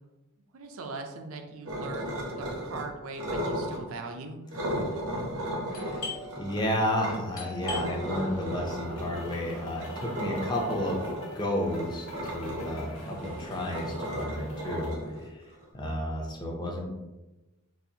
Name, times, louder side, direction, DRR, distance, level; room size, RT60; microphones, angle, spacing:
voice 1, 0.5-4.4, right 3 dB, 65° right, 5 dB, 0.4 m, -40 dB
sound 1, 1.7-2.8 3.1-3.8 4.5-7.2 7.6-15.6, equal, 85° right, 0.8 m, -35 dB
Doorbell, 5.7-11.2, left 4 dB, 40° left, 1.2 m, -44 dB
voice 2, 5.7-6.1 6.4-14.9 15.2-15.4 15.7-16.9, left 1 dB, 20° left, -1 dB, 0.5 m, -32 dB
sound 2, 8.0-14.9, left 2 dB, 90° left, 0.6 m, -49 dB
4.0 x 2.5 x 2.7 m, 1.0 s
head